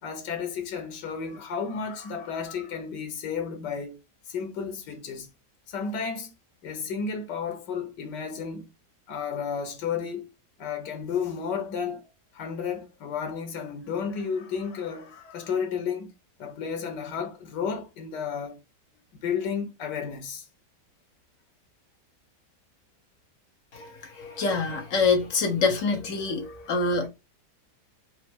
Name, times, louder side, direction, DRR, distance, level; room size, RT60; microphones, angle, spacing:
voice 1, 0.0-4.0 4.3-5.3 5.7-6.3 6.6-8.7 9.1-10.3 10.6-12.0 12.3-16.1 16.4-18.6 19.2-20.5 26.2-27.1, left 6 dB, 90° left, 1.5 m, -32 dB
voice 2, 23.7-27.1, left 4 dB, 55° left, 1.3 m, -26 dB
4.4 x 2.1 x 4.3 m
omnidirectional pair, 1.8 m